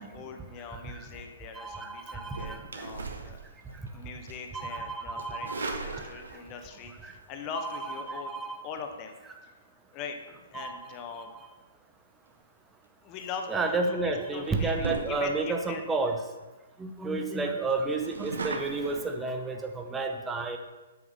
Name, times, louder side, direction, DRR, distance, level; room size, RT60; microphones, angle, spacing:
voice 1, 0.0-3.4 3.9-8.3 8.6-9.2 9.4-9.5 9.9-11.3 13.0-15.8, left 5 dB, 30° left, 5 dB, 0.8 m, -41 dB
voice 2, 1.5-2.6 4.5-5.6 5.9-6.0 7.0-7.1 8.1-8.6 10.5-10.8 13.5-16.2 16.8-20.6, right 3 dB, 10° right, 4 dB, 0.6 m, -31 dB
sound 1, 2.2-3.9 4.3-4.5 5.2-6.6 7.9-8.1 13.1-13.4 13.9-14.1 14.4-15.5 16.1-16.2 16.4-16.5 16.8-16.9 17.3-19.0, right 3 dB, 80° right, 1.0 m, -38 dB
7.9 x 3.6 x 5.4 m, 1.1 s
hypercardioid pair, 135°, 0 cm